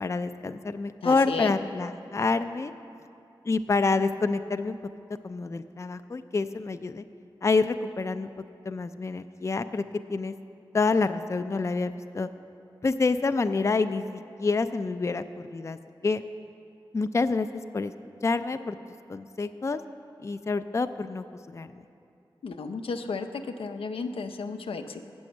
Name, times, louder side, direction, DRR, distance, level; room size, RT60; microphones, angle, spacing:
voice 1, 0.0-2.7 3.4-4.8 5.2-7.0 7.4-8.3 8.7-9.8 10.1-10.3 10.7-12.3 12.8-15.8 16.0-16.2 16.9-17.9 18.2-18.8 19.1-19.8 20.2-21.8, left 3 dB, 30° left, 10 dB, 0.3 m, -27 dB
voice 2, 1.0-1.5 22.4-23.3 23.6-25.0, left 4 dB, 90° left, 6 dB, 0.5 m, -33 dB
8.4 x 6.2 x 7.8 m, 2.6 s
cardioid pair, 55°, 9 cm